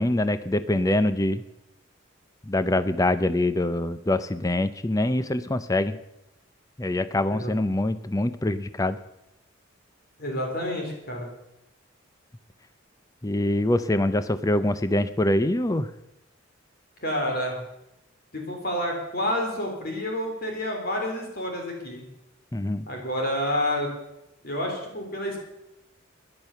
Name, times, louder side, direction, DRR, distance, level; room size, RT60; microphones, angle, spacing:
voice 1, 0.0-1.4 2.5-6.0 6.8-9.0 13.2-15.9 22.5-22.9, left 1 dB, 15° left, 13 dB, 0.6 m, -24 dB
voice 2, 10.2-11.3 17.0-17.6 18.3-22.0 22.9-23.9 24.4-25.4, left 1 dB, 50° left, 1 dB, 3.5 m, -29 dB
14.0 x 11.0 x 6.9 m, 0.87 s
head